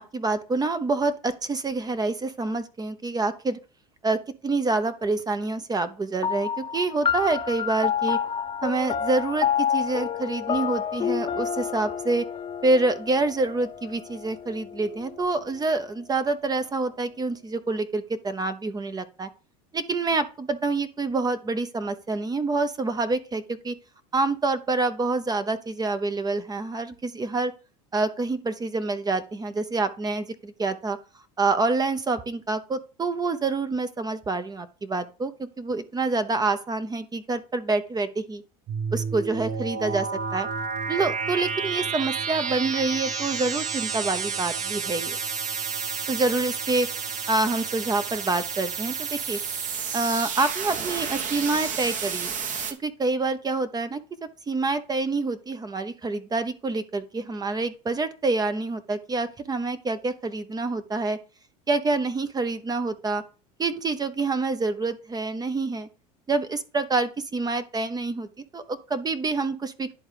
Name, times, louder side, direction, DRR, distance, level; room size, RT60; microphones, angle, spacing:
voice 1, 0.0-3.6 4.0-8.2 8.6-12.3 12.6-19.3 19.7-23.7 24.1-27.5 27.9-31.0 31.4-38.4 38.9-40.5 40.9-45.2 46.1-46.9 47.3-49.4 49.9-52.3 52.8-61.2 61.7-63.2 63.6-65.9 66.3-68.3 68.5-69.9, right 3 dB, 20° right, 11 dB, 0.7 m, -27 dB
sound 1, 6.2-15.0, left 8 dB, 25° left, 0.8 m, -29 dB
sound 2, 38.7-52.7, right 6 dB, 40° right, 1.1 m, -30 dB
10.5 x 3.6 x 4.9 m, 0.33 s
hypercardioid pair, 90°, 19 cm